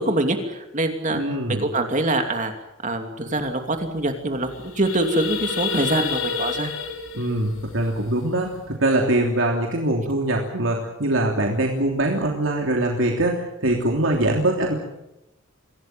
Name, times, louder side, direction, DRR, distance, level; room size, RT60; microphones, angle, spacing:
voice 1, 0.0-2.5 2.8-6.7, right 2 dB, 40° right, 5 dB, 2.8 m, -24 dB
voice 2, 1.1-1.7 7.1-14.7, right 1 dB, 75° right, 0 dB, 3.2 m, -23 dB
sound 1, 3.4-3.5 3.8-4.0 4.3-8.7, left 6 dB, 85° left, 3.4 m, -30 dB
25.0 x 17.0 x 9.1 m, 0.89 s
head